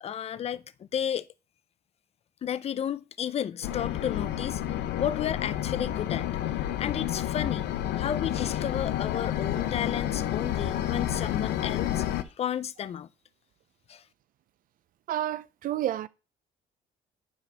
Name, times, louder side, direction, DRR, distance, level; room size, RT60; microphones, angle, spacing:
voice 1, 0.0-1.3 2.4-4.6 5.0-7.7 8.0-13.1 13.9-14.0, left 9 dB, 40° left, 0.5 m, -33 dB
sound 1, 3.6-12.2, left 11 dB, 80° left, 0.7 m, -30 dB
voice 2, 15.1-16.1, right 12 dB, 55° right, 0.5 m, -30 dB
10.5 x 4.8 x 3.4 m
cardioid pair, 110°, 17 cm